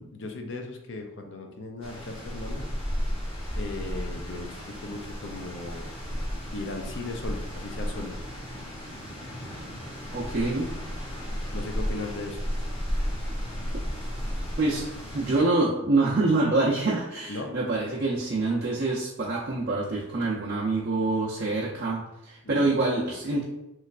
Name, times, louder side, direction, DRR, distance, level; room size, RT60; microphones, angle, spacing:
voice 1, 0.1-2.7 3.5-5.9 6.5-8.2 11.5-12.5 17.3-17.5 22.4-22.8, left 2 dB, 60° left, 4 dB, 0.5 m, -37 dB
sound 1, 1.8-15.4, equal, 25° left, 0.7 m, -34 dB
voice 2, 10.1-10.7 14.6-14.8 15.1-23.4, right 2 dB, 50° right, -7 dB, 0.5 m, -26 dB
3.1 x 3.1 x 2.4 m, 0.90 s
head